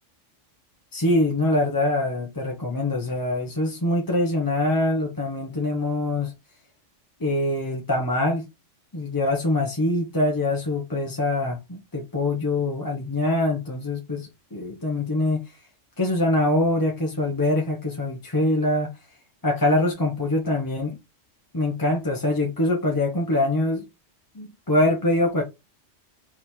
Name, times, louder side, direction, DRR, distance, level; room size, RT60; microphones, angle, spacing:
voice 1, 0.9-6.3 7.2-8.5 8.9-15.4 16.0-18.9 19.4-21.0 21.5-23.9 24.3-25.4, left 1 dB, 20° left, 0.8 m, -24 dB
3.6 x 3.2 x 4.4 m
omnidirectional pair, 1.3 m